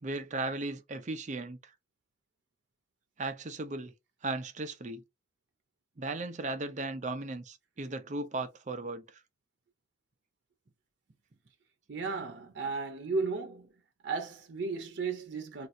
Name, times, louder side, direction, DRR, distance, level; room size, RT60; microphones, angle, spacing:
voice 1, 0.0-1.6 3.2-3.9 4.2-5.0 6.0-9.2, right 2 dB, 45° right, 0.5 m, -36 dB
voice 2, 11.9-13.7 14.0-15.7, right 4 dB, 90° right, 0.6 m, -34 dB
2.7 x 2.4 x 4.2 m
head